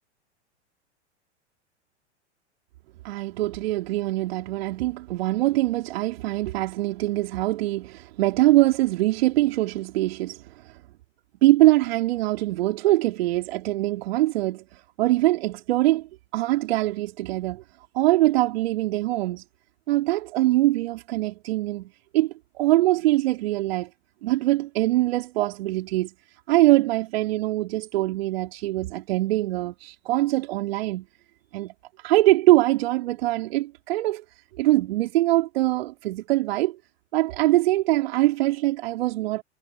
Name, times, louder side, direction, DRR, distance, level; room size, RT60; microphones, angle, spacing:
voice 1, 3.0-10.8 11.4-17.6 17.9-19.4 19.9-23.9 24.2-26.1 26.5-31.1 31.5-34.2 34.6-36.8 37.1-39.4, right 17 dB, 55° right, 3.5 m, -23 dB
figure-of-eight pair, 95°, 35 cm